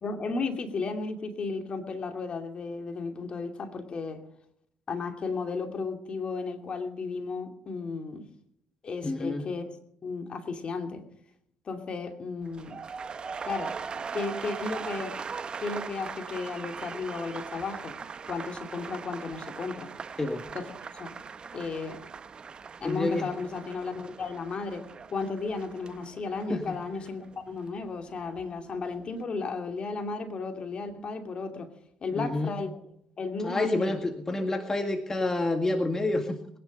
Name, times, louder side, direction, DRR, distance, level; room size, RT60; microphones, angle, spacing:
voice 1, 0.0-4.2 4.9-8.3 8.8-9.8 10.0-11.1 11.7-12.8 13.4-15.2 15.6-18.0 18.2-19.9 20.5-20.7 21.0-21.1 21.5-22.1 22.8-31.7 32.0-32.8 33.2-33.9, left 4 dB, 45° left, 5 dB, 2.6 m, -34 dB
voice 2, 9.0-9.5 20.2-20.4 22.8-23.3 26.5-26.8 32.1-32.6 33.4-36.4, left 2 dB, 20° left, 5 dB, 1.9 m, -28 dB
sound 1, 12.4-28.5 28.8-29.2, right 5 dB, 40° right, 0.8 m, -40 dB
21.5 x 10.5 x 5.3 m, 0.71 s
supercardioid pair, 80°, 2 cm